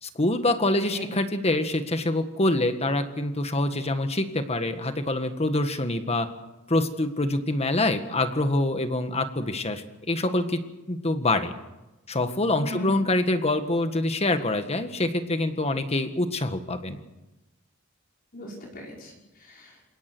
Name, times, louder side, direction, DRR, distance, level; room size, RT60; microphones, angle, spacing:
voice 1, 0.0-6.3 6.7-10.6 10.9-11.5 12.1-17.0, left 2 dB, 30° left, 8 dB, 1.8 m, -25 dB
voice 2, 0.7-1.1 12.6-13.0 18.3-19.8, left 1 dB, 45° left, -2 dB, 5.5 m, -39 dB
28.5 x 17.5 x 6.3 m, 1.0 s
head